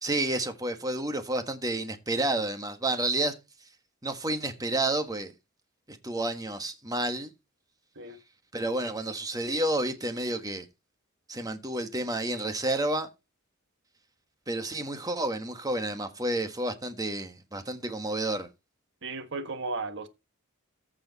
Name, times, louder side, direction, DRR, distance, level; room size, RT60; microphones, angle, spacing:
voice 1, 0.0-3.4 4.0-5.3 5.9-7.3 8.5-10.6 11.3-13.1 14.5-18.5, right 2 dB, 15° right, 1.4 m, -30 dB
voice 2, 19.0-20.1, right 3 dB, 60° right, 1.5 m, -35 dB
14.5 x 4.9 x 4.1 m
head